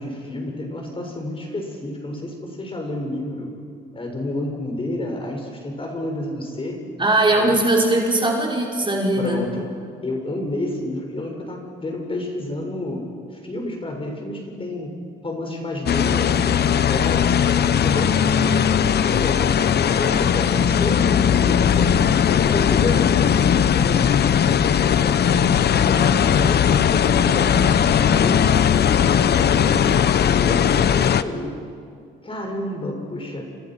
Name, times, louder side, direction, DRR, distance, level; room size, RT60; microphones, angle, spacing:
voice 1, 0.0-3.5 3.9-6.8 7.3-7.6 9.2-9.7 10.0-13.1 13.4-15.0 15.2-19.4 19.9-22.0 22.4-25.2 25.7-29.9 30.3-31.6 32.2-33.4, left 1 dB, 25° left, 2 dB, 6.1 m, -30 dB
voice 2, 7.0-9.4, right 2 dB, 25° right, -1 dB, 5.2 m, -19 dB
sound 1, 15.9-31.2, left 8 dB, 55° left, 1.0 m, -18 dB
29.5 x 26.5 x 6.2 m, 2.2 s
cardioid pair, 90°, 20 cm